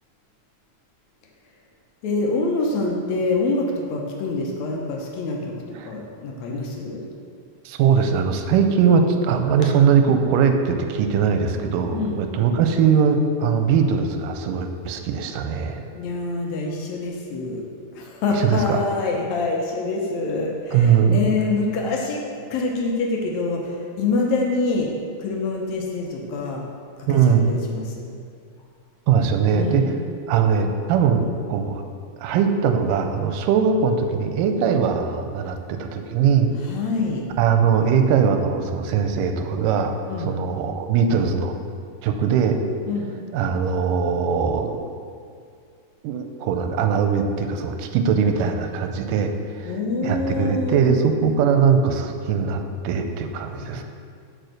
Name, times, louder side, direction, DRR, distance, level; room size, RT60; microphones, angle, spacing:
voice 1, 2.0-5.5 5.8-7.0 11.9-12.2 15.9-17.6 17.9-22.2 22.5-24.9 25.2-26.6 27.0-28.1 29.5-29.8 36.7-37.3 40.1-40.3 42.9-43.1 49.7-50.9 53.5-53.8, left 3 dB, 70° left, 0 dB, 1.9 m, -25 dB
voice 2, 7.7-15.9 18.4-18.8 20.7-21.3 27.1-27.5 29.1-29.8 30.3-31.8 32.2-36.5 37.4-41.6 42.0-42.6 43.3-44.8 46.0-49.7 50.0-53.8, right 6 dB, 90° right, 6 dB, 2.2 m, -20 dB
7.8 x 4.5 x 6.4 m, 2.2 s
omnidirectional pair, 3.8 m